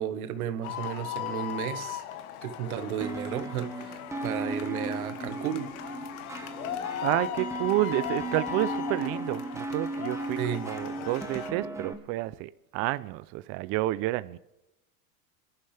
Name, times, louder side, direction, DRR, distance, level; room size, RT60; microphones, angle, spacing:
voice 1, 0.0-2.0 2.4-5.7 10.4-10.6, right 9 dB, 80° right, 1.4 m, -33 dB
sound 1, 0.6-11.5, left 11 dB, 80° left, 1.6 m, -38 dB
sound 2, 3.0-11.9, right 2 dB, 5° right, 1.3 m, -36 dB
sound 3, 4.4-8.3 8.6-8.7 9.0-9.1, left 3 dB, 20° left, 1.6 m, -45 dB
voice 2, 7.0-14.4, right 18 dB, 35° right, 0.4 m, -30 dB
27.5 x 11.5 x 3.3 m
supercardioid pair, 125°, 43 cm